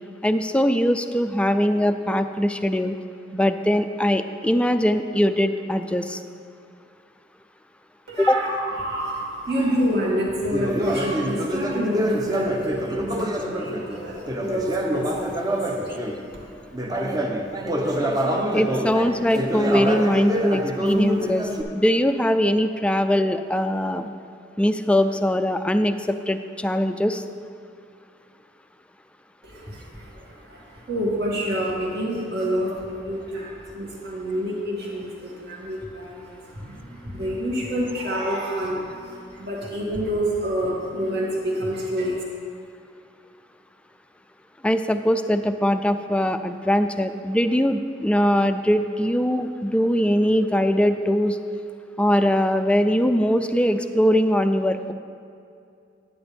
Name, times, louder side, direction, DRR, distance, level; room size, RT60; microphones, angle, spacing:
voice 1, 0.2-3.0 3.3-6.2 8.2-8.4 18.5-24.1 24.6-27.2 44.6-51.4 52.0-54.9, equal, 5° left, 9 dB, 0.3 m, -21 dB
voice 2, 8.1-16.5 29.4-42.2, equal, 65° right, -5 dB, 2.3 m, -28 dB
Conversation, 10.5-16.2 16.7-21.6, equal, 20° right, 0.7 m, -26 dB
10.5 x 9.6 x 3.5 m, 2.4 s
head